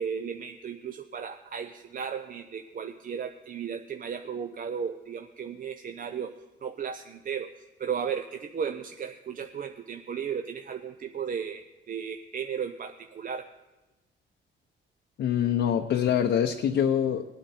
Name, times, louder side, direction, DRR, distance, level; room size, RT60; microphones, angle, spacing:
voice 1, 0.0-6.3 6.6-13.5, right 7 dB, 45° right, 7 dB, 0.6 m, -35 dB
voice 2, 15.2-17.2, left 9 dB, 65° left, 4 dB, 0.7 m, -25 dB
19.0 x 9.1 x 4.3 m, 1.1 s
cardioid pair, 90°, 20 cm